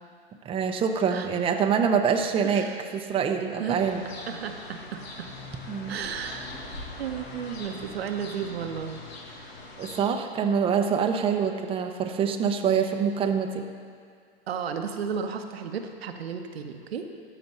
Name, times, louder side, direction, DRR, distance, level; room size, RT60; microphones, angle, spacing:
voice 1, 0.4-2.7 2.9-4.0 5.7-6.0 9.8-13.7, right 7 dB, 20° right, 4 dB, 0.6 m, -25 dB
voice 2, 2.4-2.8 3.5-3.8 4.3-5.3 5.9-6.5 7.0-9.0 9.4-9.5 14.5-17.1, right 7 dB, 90° right, 5 dB, 0.9 m, -33 dB
sound 1, 3.7-10.0, left 2 dB, 85° left, 1.5 m, -42 dB
13.0 x 5.0 x 5.5 m, 2.2 s
hypercardioid pair, 115°, 30 cm